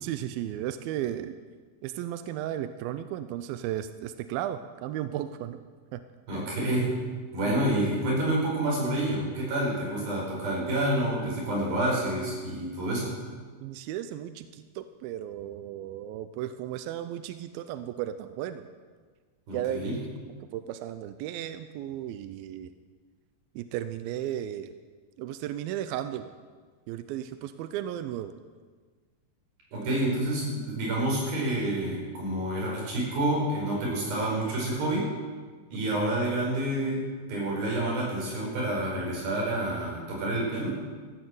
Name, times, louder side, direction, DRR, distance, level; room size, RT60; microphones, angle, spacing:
voice 1, 0.0-1.4 1.8-5.6 5.9-6.0 6.3-6.4 7.5-7.6 13.6-18.6 19.5-19.8 20.5-22.7 23.6-24.7 25.2-26.3 26.9-28.3 35.9-36.0, right 11 dB, 85° right, 10 dB, 2.2 m, -35 dB
voice 2, 6.3-6.9 7.3-13.1 19.5-20.0 29.7-35.1 35.7-37.0 37.3-40.8, right 1 dB, 65° right, -3 dB, 6.6 m, -28 dB
14.5 x 9.6 x 7.7 m, 1.5 s
omnidirectional pair, 4.6 m